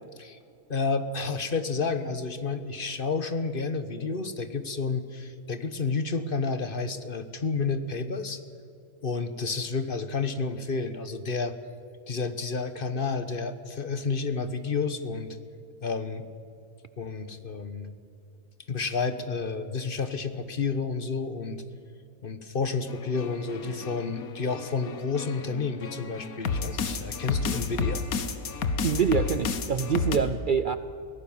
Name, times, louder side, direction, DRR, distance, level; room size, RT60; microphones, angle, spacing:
voice 1, 0.7-8.4 9.0-11.5 12.1-15.4 15.8-16.2 17.0-17.9 18.7-21.6 22.2-28.0, left 4 dB, 40° left, 11 dB, 1.2 m, -30 dB
sound 1, 22.9-30.2, left 5 dB, 65° left, 1.7 m, -31 dB
voice 2, 28.8-30.8, right 6 dB, 90° right, 12 dB, 0.4 m, -25 dB
24.0 x 17.0 x 7.2 m, 2.6 s
omnidirectional pair, 1.6 m